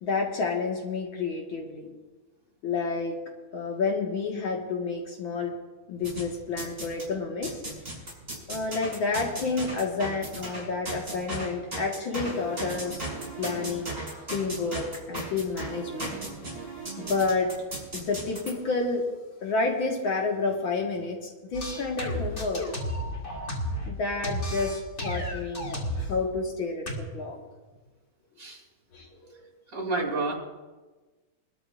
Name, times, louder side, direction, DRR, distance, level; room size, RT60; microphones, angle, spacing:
voice 1, 0.0-1.9 2.6-3.2 3.5-5.6 5.9-7.6 8.5-13.0 13.4-14.0 14.3-16.2 17.0-17.5 17.9-19.1 19.4-22.6 23.9-26.9 27.1-27.4 28.9-29.5, left 4 dB, 70° left, -1 dB, 2.4 m, -30 dB
sound 1, 6.0-7.1 7.4-18.5, right 2 dB, 25° right, 5.9 m, -37 dB
sound 2, 21.5-23.9 24.2-26.1 26.9-27.0, equal, 35° left, 2.4 m, -32 dB
voice 2, 29.7-30.3, right 3 dB, 45° right, 0 dB, 2.8 m, -29 dB
24.0 x 13.0 x 2.5 m, 1.2 s
omnidirectional pair, 2.2 m